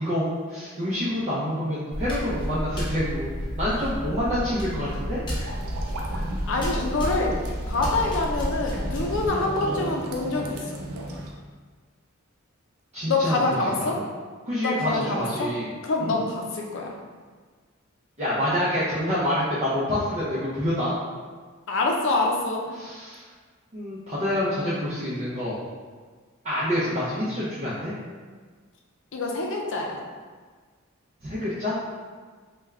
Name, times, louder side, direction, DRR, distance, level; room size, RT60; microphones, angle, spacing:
voice 1, 0.0-3.3 3.6-5.5 6.1-6.3 12.9-13.3 13.9-14.0 14.5-15.7 16.0-16.1 18.2-20.9 22.8-23.2 23.7-25.6 26.4-27.9 31.2-31.8, left 1 dB, 30° right, -10 dB, 0.6 m, -27 dB
sound 1, 1.9-9.3, equal, 20° left, 0.6 m, -31 dB
sound 2, 5.3-11.3, right 1 dB, 90° right, 0.5 m, -36 dB
voice 2, 6.5-7.4 7.7-10.8 13.1-14.0 14.6-15.5 15.8-16.9 21.7-22.6 29.1-30.0, left 2 dB, 65° left, 1 dB, 0.5 m, -26 dB
3.4 x 2.2 x 3.4 m, 1.5 s
head